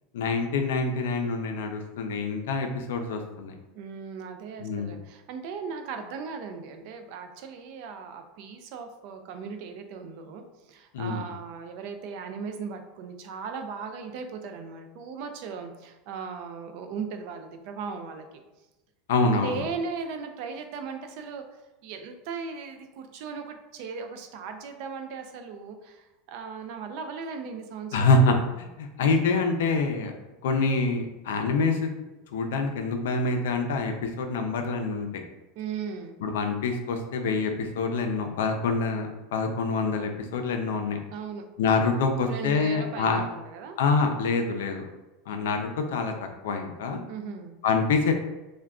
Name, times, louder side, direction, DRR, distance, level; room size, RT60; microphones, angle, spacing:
voice 1, 0.1-3.5 4.6-4.9 10.9-11.2 19.1-19.6 27.9-28.4 28.8-30.1 30.4-31.9 32.3-35.2 36.2-41.0 41.6-43.2 43.8-44.8 45.3-46.1 46.4-47.0 47.6-48.1, left 3 dB, 90° left, 4 dB, 0.4 m, -26 dB
voice 2, 3.7-18.4 19.3-28.5 35.6-36.2 41.1-41.4 42.2-43.8 47.1-47.6, right 5 dB, 60° right, 6 dB, 0.4 m, -37 dB
3.4 x 2.2 x 2.4 m, 1.0 s
supercardioid pair, 145°, 0 cm